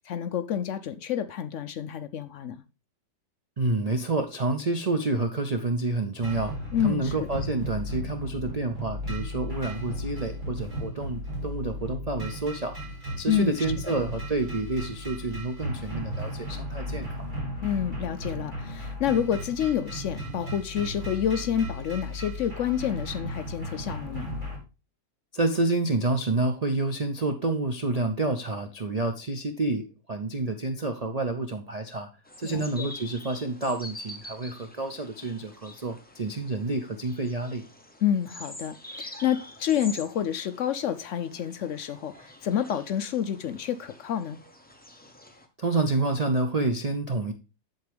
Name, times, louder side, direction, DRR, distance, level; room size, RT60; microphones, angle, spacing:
voice 1, 0.1-2.6 6.7-7.3 13.3-13.6 17.6-24.3 32.4-32.9 38.0-44.4, left 9 dB, 70° left, 0.7 m, -28 dB
voice 2, 3.6-6.5 6.8-12.8 13.2-17.3 25.3-32.1 32.4-37.6 45.6-47.3, right 2 dB, 80° right, 0.3 m, -28 dB
sound 1, 6.2-24.6, equal, 30° right, 2.8 m, -35 dB
sound 2, 32.2-45.5, left 1 dB, 10° left, 0.7 m, -46 dB
7.9 x 7.5 x 3.3 m
omnidirectional pair, 1.8 m